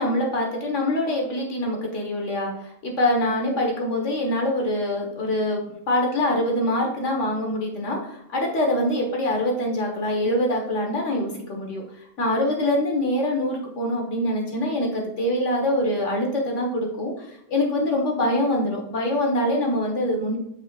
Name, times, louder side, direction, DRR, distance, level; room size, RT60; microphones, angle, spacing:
voice 1, 0.0-11.8 12.2-20.4, left 1 dB, 45° left, 0 dB, 1.6 m, -24 dB
8.5 x 4.8 x 2.4 m, 0.75 s
omnidirectional pair, 1.9 m